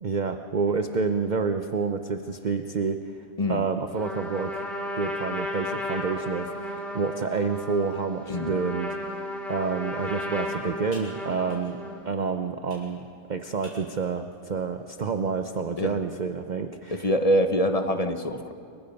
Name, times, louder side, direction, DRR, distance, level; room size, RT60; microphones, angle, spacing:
voice 1, 0.0-3.2 3.5-4.6 5.0-9.2 9.5-11.8 12.0-17.1, right 5 dB, 40° right, 7 dB, 0.7 m, -29 dB
Trumpet, 3.9-12.1, left 1 dB, ahead, 3.1 m, -34 dB
Computer keyboard, 9.5-16.2, equal, 85° right, 7.3 m, -55 dB
voice 2, 16.9-18.5, equal, 30° left, 7 dB, 1.0 m, -24 dB
29.5 x 22.5 x 5.3 m, 2.4 s
omnidirectional pair, 1.6 m